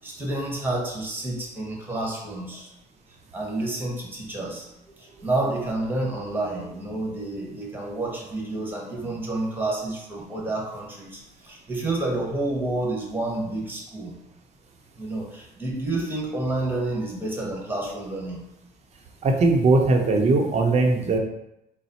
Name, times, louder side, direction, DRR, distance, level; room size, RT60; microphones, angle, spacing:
voice 1, 0.0-2.7 3.3-14.2 15.0-18.4, right 2 dB, 10° right, -2 dB, 1.1 m, -29 dB
voice 2, 19.2-21.2, right 3 dB, 40° right, 3 dB, 0.7 m, -19 dB
4.0 x 2.0 x 4.1 m, 0.85 s
cardioid pair, 110°, 17 cm